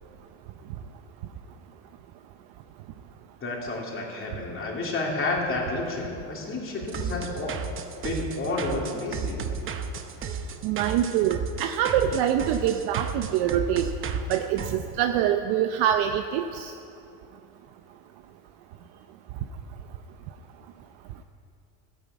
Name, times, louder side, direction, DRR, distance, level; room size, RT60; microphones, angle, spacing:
voice 1, 3.4-7.6 8.0-9.6, left 2 dB, 30° left, -2 dB, 2.9 m, -30 dB
sound 1, 6.9-14.7, right 5 dB, 30° right, 0.8 m, -33 dB
voice 2, 10.6-13.9 14.3-16.7, right 10 dB, 60° right, 7 dB, 0.7 m, -25 dB
14.0 x 10.0 x 8.2 m, 2.8 s
cardioid pair, 135°, 45 cm